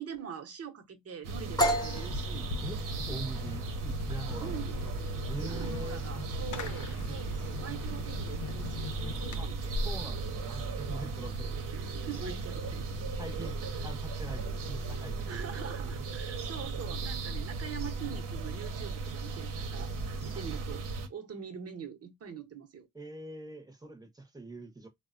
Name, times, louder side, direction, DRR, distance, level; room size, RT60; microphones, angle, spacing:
voice 1, 0.0-2.5 4.4-4.8 5.1-9.8 11.7-13.1 13.4-13.8 15.3-22.9, right 7 dB, 50° right, 0.9 m, -44 dB
sound 1, 1.2-21.1, right 3 dB, 85° right, 0.8 m, -36 dB
sound 2, 1.6-9.2, equal, 15° left, 1.0 m, -36 dB
Fireworks, 2.0-9.4, left 3 dB, 70° left, 0.7 m, -40 dB
voice 2, 2.6-4.7 5.3-6.0 9.4-11.5 13.2-13.5 13.8-15.4 20.3-20.5 22.9-24.9, right 2 dB, 10° right, 0.9 m, -43 dB
3.4 x 2.1 x 2.5 m
cardioid pair, 95°, 31 cm